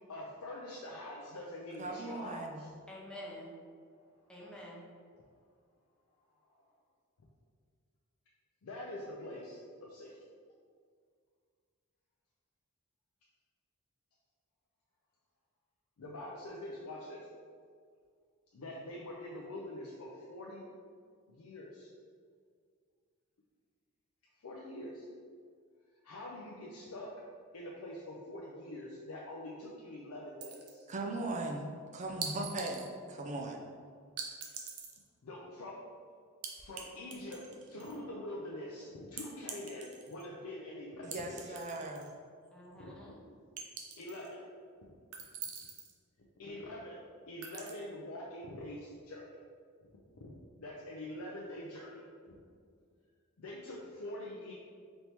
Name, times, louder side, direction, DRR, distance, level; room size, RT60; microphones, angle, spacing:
voice 1, 0.1-2.7 8.6-10.2 16.0-17.2 18.5-20.6 21.3-21.9 24.4-25.1 26.0-27.1 27.5-30.8 35.2-35.8 36.6-37.4 37.6-41.6 42.8-43.0 44.0-44.4 44.8-44.9 46.4-49.4 50.6-52.4 53.4-54.5, left 1 dB, 85° left, -4 dB, 0.5 m, -45 dB
voice 2, 1.8-2.6 30.9-32.8 33.1-33.6 41.0-42.1, right 2 dB, 35° right, 2 dB, 0.4 m, -38 dB
voice 3, 2.9-3.5 4.3-4.8 33.0-33.4 42.5-43.2, left 1 dB, 5° left, -5 dB, 0.7 m, -48 dB
sound 1, 30.4-31.0 32.2-32.9 34.2-35.0 36.4-36.8 37.1-38.0 39.2-40.2 41.1-42.1 42.5-42.6 43.6-44.3 45.1-45.9 47.4-47.7, right 6 dB, 80° right, 0.6 m, -43 dB
4.2 x 3.4 x 2.9 m, 2.1 s
head